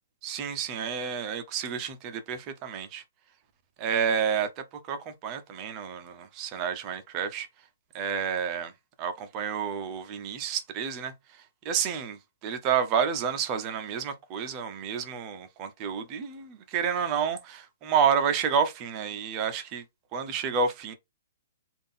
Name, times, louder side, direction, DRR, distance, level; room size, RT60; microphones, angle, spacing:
voice 1, 0.2-3.0 3.8-7.5 7.9-8.7 9.0-11.1 11.6-19.8 20.1-20.9, right 7 dB, 20° right, 0.6 m, -29 dB
3.7 x 2.5 x 3.6 m
hypercardioid pair, 175°, 0 cm